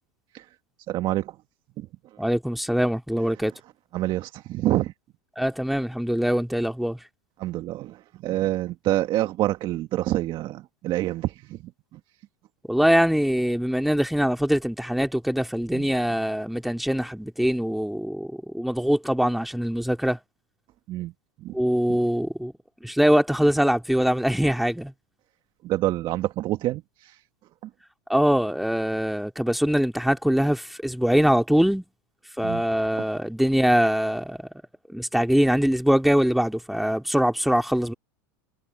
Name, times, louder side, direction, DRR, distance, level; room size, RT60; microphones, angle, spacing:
voice 1, 0.9-1.4 1.8-1.9 3.9-4.9 7.4-12.0 15.7-15.9 20.9-21.1 21.4-21.5 25.6-27.2 32.4-32.6, right 15 dB, 45° right, 1.8 m, -27 dB
voice 2, 2.2-3.5 5.4-7.0 12.7-20.2 21.5-22.5 22.8-24.9 28.1-31.8 32.4-34.4 34.9-37.9, equal, ahead, 2.4 m, -23 dB
hypercardioid pair, 110°, 11 cm